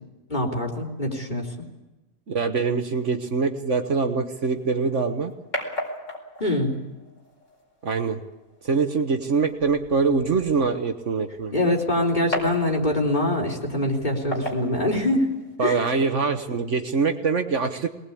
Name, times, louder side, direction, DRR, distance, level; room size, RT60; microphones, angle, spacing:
voice 1, 0.3-1.4 6.4-6.7 11.5-15.2 15.6-15.8, left 1 dB, 35° left, 0 dB, 3.7 m, -24 dB
voice 2, 2.3-5.3 7.8-8.2 8.6-11.5 15.6-17.9, right 4 dB, 60° right, 6 dB, 1.5 m, -24 dB
sound 1, 4.6-15.6, left 1 dB, 60° left, 5.2 m, -38 dB
22.5 x 19.5 x 8.5 m, 1.1 s
omnidirectional pair, 1.5 m